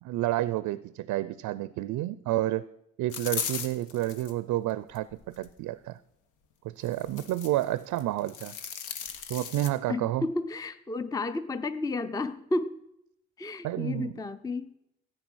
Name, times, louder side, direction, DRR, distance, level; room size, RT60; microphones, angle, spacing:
voice 1, 0.0-2.6 3.0-6.0 6.6-8.5 9.3-10.2 13.6-14.1, right 15 dB, 80° right, 17 dB, 0.5 m, -30 dB
sound 1, 3.1-4.3 4.9-5.5 6.8-7.6 8.0-9.7, left 7 dB, 85° left, 1.2 m, -37 dB
voice 2, 9.9-12.8 13.4-14.8, left 2 dB, 10° left, 12 dB, 0.5 m, -32 dB
13.0 x 9.0 x 6.2 m, 0.84 s
cardioid pair, 90°, 30 cm